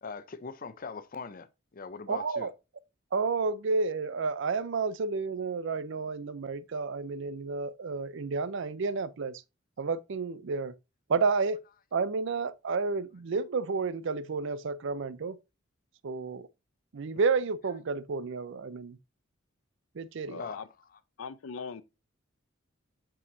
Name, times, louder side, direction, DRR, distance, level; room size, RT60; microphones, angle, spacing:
voice 1, 0.0-2.5 20.4-21.0 21.6-21.7, left 5 dB, 45° left, 0.6 m, -42 dB
voice 2, 2.1-2.5 3.1-9.4 9.8-10.7 11.1-11.6 11.9-15.4 16.0-16.5 16.9-19.0 20.0-20.4, right 4 dB, 65° right, 0.5 m, -31 dB
voice 3, 20.3-20.7 21.2-21.8, left 5 dB, 90° left, 0.6 m, -40 dB
7.0 x 5.6 x 2.6 m
head